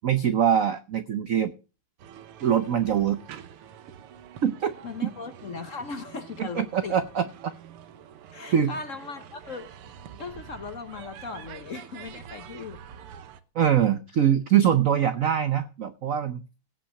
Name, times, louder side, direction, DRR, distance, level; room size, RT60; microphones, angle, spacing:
voice 1, 0.0-1.5 2.4-3.2 4.4-4.7 5.0-5.1 6.4-7.2 8.5-8.7 13.5-16.5, right 9 dB, 75° right, 0.7 m, -23 dB
sound 1, 2.0-13.4, right 9 dB, 90° right, 1.9 m, -46 dB
voice 2, 4.8-7.0 8.3-9.7 10.2-12.9, left 4 dB, 45° left, 1.1 m, -38 dB
17.0 x 5.7 x 6.5 m
omnidirectional pair, 2.4 m